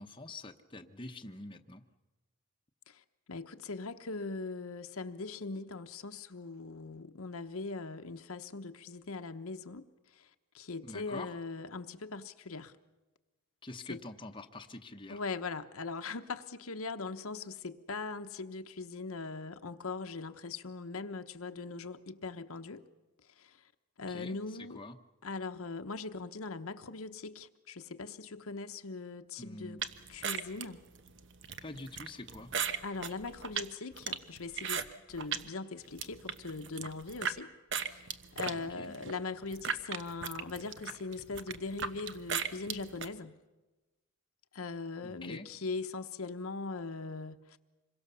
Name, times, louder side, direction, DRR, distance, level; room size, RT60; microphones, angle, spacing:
voice 1, 0.0-1.8 10.8-11.4 13.6-15.2 24.1-24.4 24.7-25.0 29.4-29.8 31.6-32.5 38.7-38.9 45.0-45.5, left 2 dB, 25° left, 0.9 m, -45 dB
voice 2, 2.9-9.8 10.1-10.3 10.5-12.7 13.9-14.0 15.1-22.8 23.3-23.6 24.0-24.8 25.2-29.8 30.1-30.8 32.8-37.5 37.9-43.4 44.5-47.6, left 3 dB, 80° left, 1.0 m, -40 dB
sound 1, 29.8-35.5 35.8-37.4 37.7-43.1, right 7 dB, 55° right, 1.1 m, -37 dB
26.5 x 22.5 x 6.9 m
head